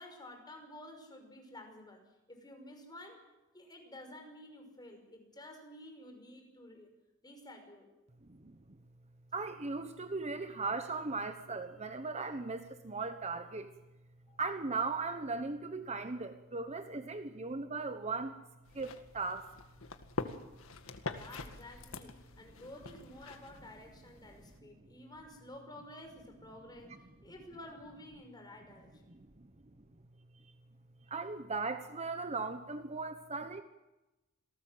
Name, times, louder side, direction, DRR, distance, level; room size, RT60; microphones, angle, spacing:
voice 1, 0.0-2.0 2.3-3.2 3.5-6.9 7.2-7.9 14.3-14.4 21.1-29.1, left 1 dB, 20° left, 4 dB, 5.8 m, -51 dB
voice 2, 8.3-8.6 9.3-13.7 14.4-18.3 18.7-19.5 29.1-29.3 31.1-33.6, right 3 dB, 30° right, 8 dB, 1.2 m, -38 dB
sound 1, 18.6-24.6, left 3 dB, 70° left, 1.9 m, -45 dB
27.0 x 18.5 x 7.8 m, 1.0 s
head